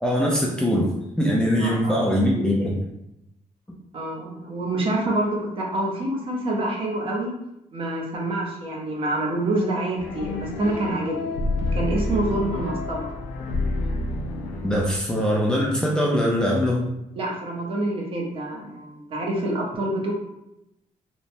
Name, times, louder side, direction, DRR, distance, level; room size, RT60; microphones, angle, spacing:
voice 1, 0.0-2.8 14.6-16.8, equal, 5° left, -3 dB, 0.3 m, -22 dB
voice 2, 1.6-2.0 3.9-7.3 7.7-11.3 11.7-13.1 17.2-20.1, right 1 dB, 45° right, -2 dB, 0.7 m, -27 dB
sound 1, 10.0-15.0, left 2 dB, 75° left, 0.4 m, -28 dB
3.0 x 2.1 x 2.6 m, 0.86 s
cardioid pair, 160°, 13 cm